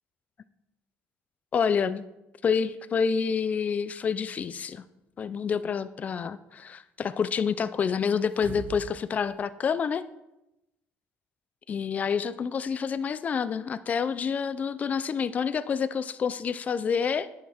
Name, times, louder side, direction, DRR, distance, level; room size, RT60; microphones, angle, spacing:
voice 1, 1.5-2.1 2.4-4.8 5.2-10.0 11.7-17.3, left 6 dB, 35° left, 14 dB, 0.5 m, -28 dB
sound 1, 8.2-9.0 9.4-9.5, right 8 dB, 45° right, 0.4 m, -41 dB
10.5 x 5.9 x 4.9 m, 0.93 s
cardioid pair, 130°, 5 cm